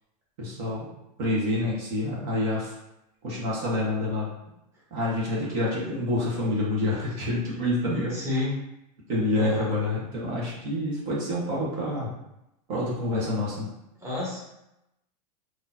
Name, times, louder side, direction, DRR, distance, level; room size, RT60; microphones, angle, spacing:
voice 1, 0.4-0.9 1.2-2.7 3.2-4.3 4.9-8.1 9.1-12.1 12.7-13.7, left 1 dB, 55° right, -5 dB, 1.5 m, -27 dB
voice 2, 8.1-8.6 9.3-9.8 14.0-14.4, left 1 dB, 15° right, -7 dB, 1.5 m, -29 dB
3.8 x 3.0 x 2.8 m, 0.88 s
hypercardioid pair, 110°, 20 cm